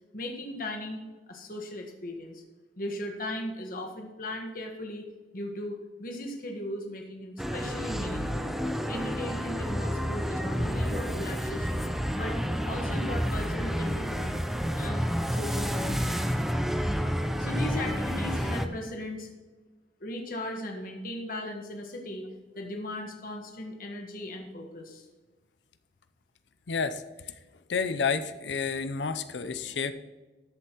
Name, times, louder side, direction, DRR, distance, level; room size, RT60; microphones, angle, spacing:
voice 1, 0.1-2.4 2.8-5.0 5.3-8.5 8.9-11.9 12.1-12.4 12.6-14.4 14.7-15.0 15.3-16.3 17.4-19.3 20.0-22.2 22.5-25.1, left 1 dB, 50° left, 2 dB, 1.4 m, -37 dB
sound 1, 7.4-18.7, equal, ahead, 0.6 m, -30 dB
voice 2, 26.7-27.0 27.7-29.9, left 5 dB, 85° left, 11 dB, 0.6 m, -30 dB
13.5 x 8.0 x 3.0 m, 1.2 s
head